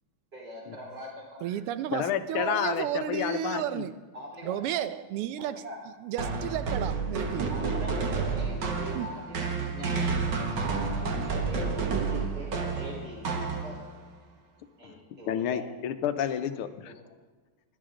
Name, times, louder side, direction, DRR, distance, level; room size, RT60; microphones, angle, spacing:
voice 1, 0.3-1.7 4.1-4.8 5.4-5.8 7.5-8.0 8.3-10.2 10.6-13.8 14.8-15.6 16.8-16.9, equal, 25° right, 4.3 m, -43 dB
voice 2, 1.4-3.9 4.4-5.6 6.0-7.5 8.9-9.1, right 11 dB, 90° right, 1.6 m, -32 dB
voice 3, 1.9-3.9 14.8-14.9 15.3-16.9, left 9 dB, 80° left, 1.7 m, -30 dB
sound 1, 6.2-14.0, right 4 dB, 55° right, 1.9 m, -30 dB
17.0 x 11.5 x 3.8 m
omnidirectional pair, 2.4 m